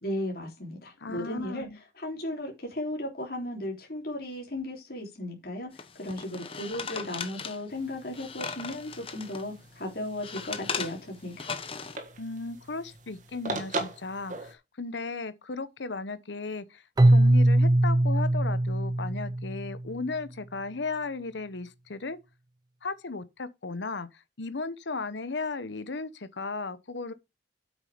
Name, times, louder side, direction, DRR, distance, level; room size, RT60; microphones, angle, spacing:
voice 1, 0.0-1.7 2.0-11.5, left 1 dB, 55° left, 3.7 m, -35 dB
voice 2, 1.0-1.8 12.2-22.2 22.8-27.1, left 3 dB, 85° left, 1.0 m, -35 dB
sound 1, 5.8-9.5 9.9-12.0, left 5 dB, 30° left, 1.0 m, -38 dB
sound 2, 7.7-14.5, right 2 dB, 45° right, 1.7 m, -40 dB
Keyboard (musical), 17.0-19.9, right 1 dB, 20° right, 0.4 m, -22 dB
8.4 x 6.2 x 5.1 m
head